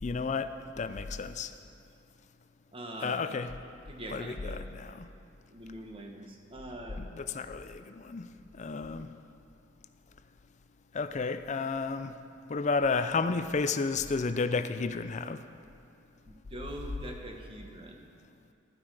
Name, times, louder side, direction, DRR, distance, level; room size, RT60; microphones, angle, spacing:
voice 1, 0.0-1.5 3.0-3.5 4.1-5.1 7.0-8.3 8.6-9.1 10.9-12.1 12.5-15.4, left 4 dB, 35° left, 11 dB, 0.5 m, -32 dB
voice 2, 2.7-3.2 3.9-4.6 5.5-7.0 16.3-18.0, right 1 dB, 25° right, 2 dB, 1.2 m, -43 dB
12.0 x 11.5 x 4.8 m, 2.6 s
head